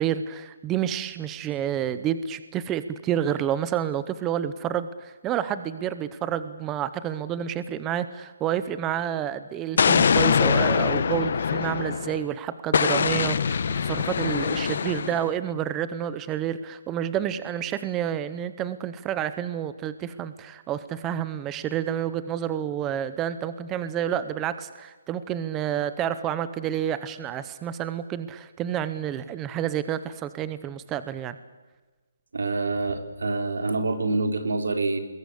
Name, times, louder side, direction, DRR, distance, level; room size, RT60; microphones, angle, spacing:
voice 1, 0.0-31.4, right 10 dB, 10° right, 13 dB, 0.7 m, -29 dB
Explosion, 9.8-12.2 12.7-15.3, left 6 dB, 50° left, 1.2 m, -23 dB
voice 2, 32.3-35.0, right 3 dB, 85° right, 6 dB, 4.3 m, -26 dB
27.5 x 21.5 x 8.2 m, 1.3 s
hypercardioid pair, 175°, 0 cm